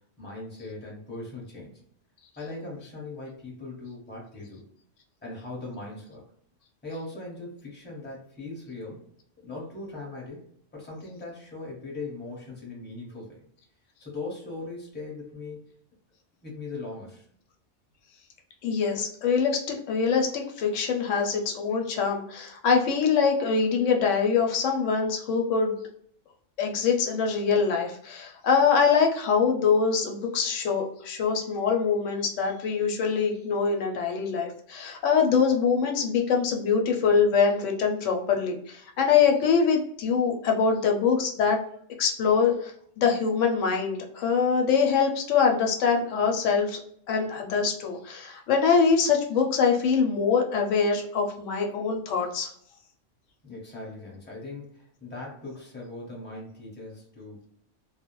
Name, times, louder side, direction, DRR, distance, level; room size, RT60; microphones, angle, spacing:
voice 1, 0.2-1.8 2.4-4.7 5.2-6.2 6.8-9.0 9.4-10.4 10.7-13.4 14.0-15.6 16.4-17.3 53.4-57.5, left 2 dB, 10° left, -3 dB, 0.8 m, -39 dB
voice 2, 18.6-25.8 26.6-41.6 42.0-46.8 47.1-52.5, left 5 dB, 90° left, 2 dB, 0.9 m, -24 dB
2.3 x 2.1 x 2.9 m, 0.65 s
omnidirectional pair, 1.2 m